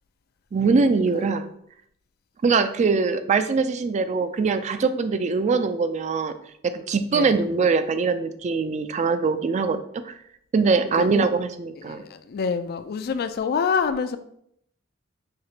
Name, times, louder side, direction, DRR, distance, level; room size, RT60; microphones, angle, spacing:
voice 1, 0.5-1.5 2.4-6.3 6.6-9.8 10.1-10.2 10.5-12.0, right 4 dB, 35° right, 10 dB, 0.3 m, -22 dB
voice 2, 7.1-7.5 11.0-11.3 11.8-14.2, left 6 dB, 50° left, 11 dB, 0.3 m, -27 dB
5.8 x 2.8 x 2.8 m, 0.69 s
head